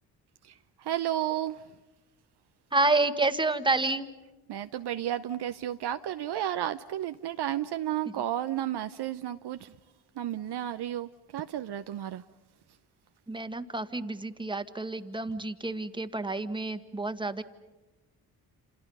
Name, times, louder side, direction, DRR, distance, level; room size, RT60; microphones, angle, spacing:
voice 1, 0.8-1.6 4.5-9.7 10.2-12.2, right 12 dB, 55° right, 10 dB, 0.8 m, -32 dB
voice 2, 2.7-4.1 13.3-17.4, right 2 dB, 10° right, 9 dB, 1.7 m, -29 dB
28.0 x 28.0 x 5.5 m, 1.1 s
hypercardioid pair, 50°, 47 cm